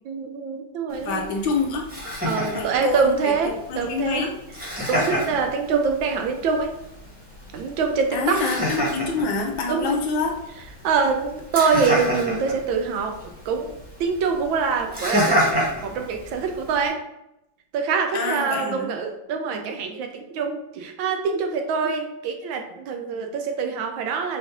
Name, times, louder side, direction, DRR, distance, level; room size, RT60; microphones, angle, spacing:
voice 1, 0.1-1.3 2.2-4.3 4.8-6.8 7.5-8.4 9.7-10.0 10.8-13.2 13.5-17.1 17.7-24.4, right 5 dB, 75° right, 4 dB, 1.2 m, -25 dB
Laughter, 0.9-16.9, equal, 5° right, 1.0 m, -30 dB
voice 2, 1.0-1.9 2.5-4.3 8.1-10.4 18.1-18.9, left 4 dB, 70° left, 1 dB, 1.4 m, -26 dB
5.2 x 2.6 x 3.5 m, 0.86 s
omnidirectional pair, 2.4 m